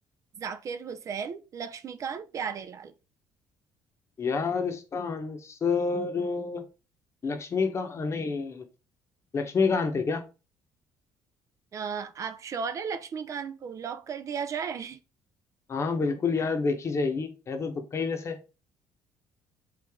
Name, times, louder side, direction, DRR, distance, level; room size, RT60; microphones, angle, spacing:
voice 1, 0.4-2.9 11.7-15.0, right 6 dB, 45° right, 0.4 m, -35 dB
voice 2, 4.2-6.6 7.2-8.6 9.3-10.2 15.7-18.4, left 4 dB, 40° left, 0.9 m, -28 dB
3.7 x 3.2 x 3.6 m
cardioid pair, 100°, 8 cm